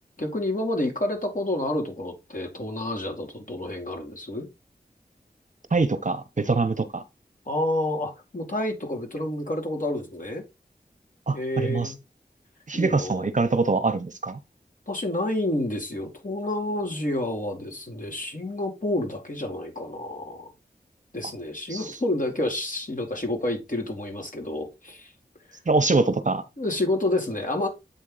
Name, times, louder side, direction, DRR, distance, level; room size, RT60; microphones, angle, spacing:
voice 1, 0.2-4.5 7.5-10.4 11.3-12.0 12.7-13.3 14.9-20.5 21.1-25.1 26.6-27.7, left 1 dB, 55° left, 2.2 m, -29 dB
voice 2, 5.7-7.0 11.3-11.9 12.7-14.4 21.7-22.0 25.7-26.4, right 3 dB, 50° right, 0.8 m, -24 dB
8.1 x 3.6 x 3.9 m
wide cardioid pair, 50°, 17 cm